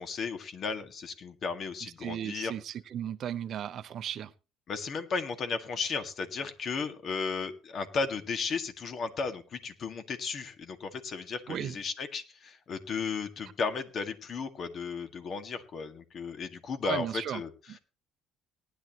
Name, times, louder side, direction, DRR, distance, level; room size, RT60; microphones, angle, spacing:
voice 1, 0.0-2.5 4.7-17.5, left 5 dB, 45° left, 1.9 m, -35 dB
voice 2, 1.8-4.3 11.5-11.8 16.8-17.4 17.7-17.8, right 10 dB, 50° right, 0.8 m, -35 dB
18.5 x 11.0 x 3.0 m
cardioid pair, 125°, 0 cm